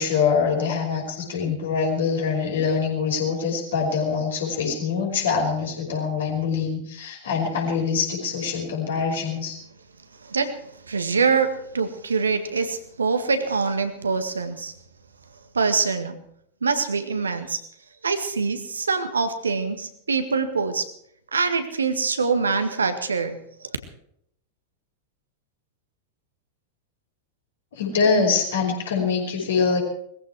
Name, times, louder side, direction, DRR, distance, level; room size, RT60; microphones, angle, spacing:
voice 1, 0.0-9.6 27.7-29.8, left 5 dB, 60° left, 1 dB, 5.6 m, -24 dB
voice 2, 10.2-10.6 10.9-14.7 15.6-16.2 16.6-17.6 18.0-20.9 21.3-23.4, right 4 dB, 75° right, 8 dB, 1.8 m, -24 dB
20.5 x 15.0 x 4.7 m, 0.70 s
figure-of-eight pair, 90°, 0 cm